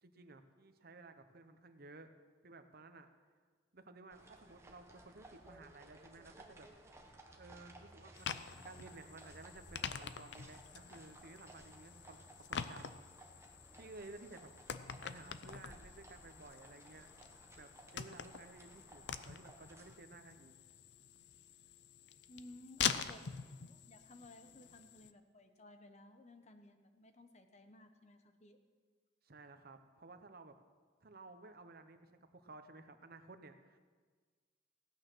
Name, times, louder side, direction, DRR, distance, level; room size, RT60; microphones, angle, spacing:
voice 1, 0.0-2.1 2.4-3.1 3.7-6.7 7.4-13.1 13.5-14.5 15.0-17.1 17.6-20.5 29.2-30.5 31.0-33.8, right 3 dB, 50° right, 8 dB, 0.9 m, -55 dB
sound 1, 4.1-20.0, right 1 dB, 15° right, 1.1 m, -59 dB
sound 2, 8.2-25.1, left 8 dB, 60° left, 0.5 m, -45 dB
voice 2, 22.3-23.3 23.6-28.6, left 2 dB, 35° left, 7 dB, 0.9 m, -57 dB
16.0 x 9.1 x 6.2 m, 1.5 s
head